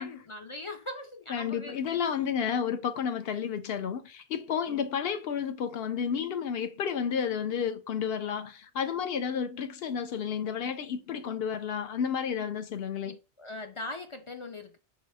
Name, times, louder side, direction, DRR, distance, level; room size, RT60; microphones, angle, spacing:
voice 1, 0.0-1.8 4.7-4.9 11.1-11.2 13.0-14.8, left 2 dB, 50° left, 0.4 m, -41 dB
voice 2, 1.3-13.2, left 7 dB, 70° left, 0.8 m, -31 dB
4.8 x 3.1 x 3.4 m
omnidirectional pair, 1.1 m